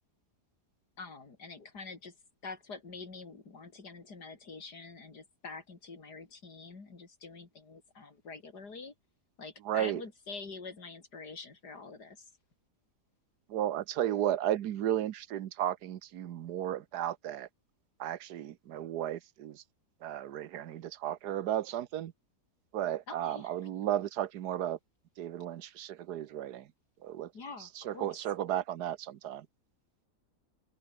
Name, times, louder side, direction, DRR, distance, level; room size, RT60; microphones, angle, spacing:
voice 1, 1.0-2.2 2.4-8.9 9.4-12.3 23.1-23.5 27.3-28.4, left 4 dB, 80° left, 3.9 m, -46 dB
voice 2, 9.6-10.0 13.5-17.5 18.0-19.6 20.0-22.1 22.7-24.8 25.2-26.7 27.0-27.3 27.8-29.5, right 11 dB, 80° right, 1.4 m, -34 dB
omnidirectional pair, 1.7 m